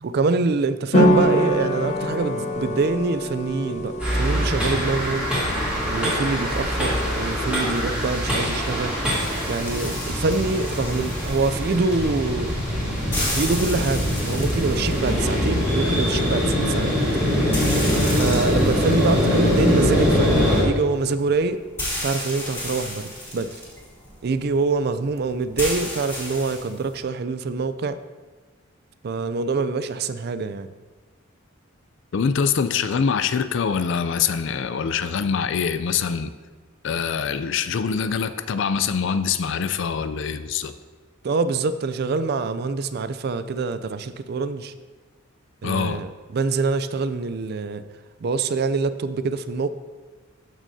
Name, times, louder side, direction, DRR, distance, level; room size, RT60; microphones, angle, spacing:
voice 1, 0.0-3.9 4.2-5.3 5.9-9.0 9.5-12.5 13.3-17.0 18.1-21.6 22.0-23.6 24.2-28.0 29.0-30.7 41.2-44.7 45.6-47.8 48.2-49.7, right 4 dB, 50° right, 12 dB, 0.4 m, -25 dB
sound 1, 0.9-8.2, equal, 35° left, 0.9 m, -25 dB
sound 2, 4.0-20.6, equal, 5° right, 2.8 m, -23 dB
sound 3, 9.1-27.0, left 1 dB, 10° left, 2.5 m, -34 dB
voice 2, 32.1-36.3 36.8-40.7 45.6-46.0, left 6 dB, 60° left, 12 dB, 0.4 m, -24 dB
13.0 x 6.2 x 2.7 m, 1.4 s
head